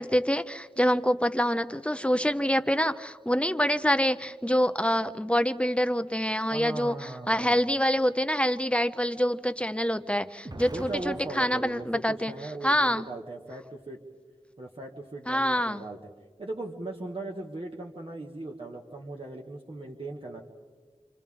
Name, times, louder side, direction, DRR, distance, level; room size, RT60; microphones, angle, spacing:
voice 1, 0.0-12.3 12.6-13.1 15.3-15.8, equal, 10° left, 10 dB, 0.7 m, -26 dB
voice 2, 6.5-7.6 10.7-14.0 14.6-16.0 16.4-20.4, right 2 dB, 50° right, 0 dB, 1.8 m, -38 dB
Explosion, 10.4-12.6, right 2 dB, 35° right, 0.7 m, -44 dB
29.5 x 27.5 x 3.7 m, 1.5 s
wide cardioid pair, 50°, 12 cm